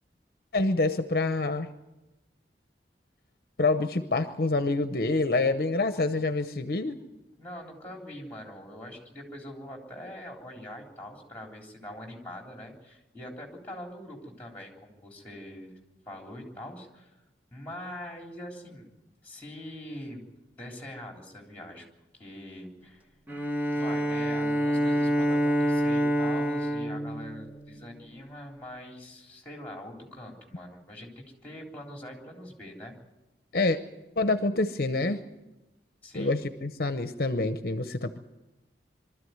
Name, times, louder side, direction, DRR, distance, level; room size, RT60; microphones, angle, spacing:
voice 1, 0.5-1.7 3.6-7.0 33.5-33.8 34.2-35.2 36.1-38.2, left 2 dB, 55° left, 9 dB, 0.8 m, -27 dB
voice 2, 7.4-15.7 16.1-17.2 17.5-18.9 19.2-20.2 20.6-21.9 22.1-23.0 23.7-32.9 36.0-36.4, left 1 dB, 10° left, 1 dB, 3.6 m, -43 dB
Bowed string instrument, 23.3-28.1, equal, 10° right, 1.5 m, -27 dB
23.5 x 13.5 x 9.4 m, 1.0 s
head